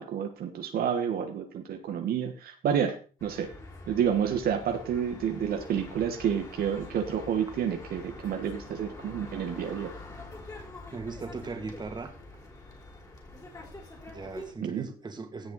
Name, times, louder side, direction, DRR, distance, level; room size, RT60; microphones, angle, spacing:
voice 1, 0.0-3.0 3.2-3.5 3.9-9.9 14.6-14.9, right 8 dB, 65° right, 5 dB, 1.5 m, -29 dB
sound 1, 3.2-14.5, left 2 dB, 20° left, 3.9 m, -45 dB
voice 2, 10.9-12.1 14.1-15.5, right 4 dB, 25° right, 5 dB, 2.4 m, -38 dB
16.5 x 5.6 x 4.1 m, 0.37 s
cardioid pair, 110°, 17 cm